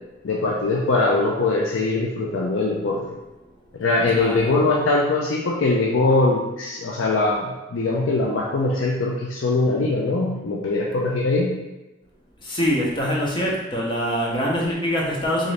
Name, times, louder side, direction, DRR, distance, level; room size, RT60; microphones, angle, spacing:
voice 1, 0.2-3.0 3.8-11.5, left 2 dB, 85° left, -2 dB, 0.4 m, -22 dB
voice 2, 4.1-4.4 12.4-15.5, equal, 25° left, -3 dB, 0.6 m, -24 dB
3.8 x 2.6 x 3.2 m, 1.1 s
head